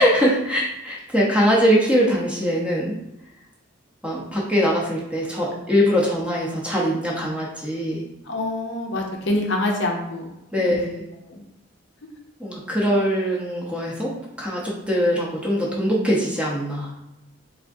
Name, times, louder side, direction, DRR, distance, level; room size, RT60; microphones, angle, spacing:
voice 1, 0.0-2.9 4.0-8.0 10.5-11.0 12.4-16.9, equal, 5° right, -4 dB, 0.7 m, -22 dB
voice 2, 8.3-10.3 10.7-10.8 11.3-11.4, left 1 dB, 60° left, 1 dB, 0.6 m, -25 dB
3.5 x 3.5 x 2.6 m, 0.89 s
head